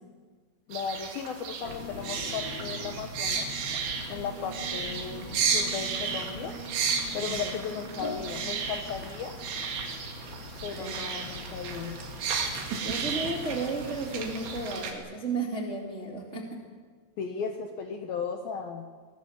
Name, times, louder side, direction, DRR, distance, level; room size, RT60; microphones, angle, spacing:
voice 1, 0.7-3.5 4.1-6.5 7.1-9.4 10.6-12.0 17.2-18.8, left 6 dB, 70° left, 5 dB, 2.4 m, -36 dB
sound 1, 0.7-14.9, right 6 dB, 85° right, 5.0 m, -33 dB
sound 2, 1.6-14.7, left 3 dB, 50° left, 1.4 m, -42 dB
Singing, 3.9-8.8, right 7 dB, 55° right, 3.7 m, -46 dB
voice 2, 7.1-7.5 10.8-11.0 12.8-16.6, right 3 dB, 25° right, 0 dB, 1.5 m, -34 dB
23.5 x 19.5 x 7.3 m, 1.5 s
omnidirectional pair, 5.6 m